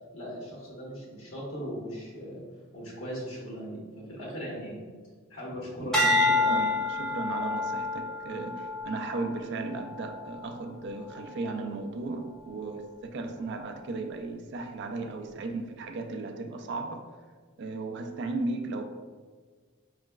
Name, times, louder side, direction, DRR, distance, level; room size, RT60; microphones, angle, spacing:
voice 1, 0.1-2.4 2.7-4.8 5.3-6.6, equal, 65° left, -5 dB, 1.3 m, -38 dB
voice 2, 5.8-17.1 17.6-18.8, right 3 dB, 55° right, 5 dB, 0.4 m, -36 dB
sound 1, 5.9-10.4 11.0-11.4, left 2 dB, ahead, 0.5 m, -28 dB
4.7 x 3.1 x 2.3 m, 1.5 s
head